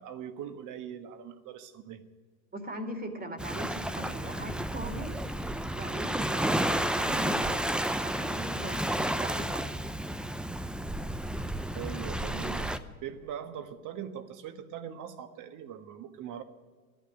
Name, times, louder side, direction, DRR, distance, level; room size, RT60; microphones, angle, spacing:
voice 1, 0.0-2.0 11.7-16.4, right 9 dB, 45° right, 9 dB, 1.5 m, -41 dB
voice 2, 2.5-5.2 5.7-9.6, right 1 dB, 20° right, 5 dB, 2.2 m, -41 dB
Waves surf, 3.4-12.8, right 1 dB, ahead, 0.6 m, -31 dB
13.5 x 9.2 x 9.9 m, 1.5 s
hypercardioid pair, 90°, 42 cm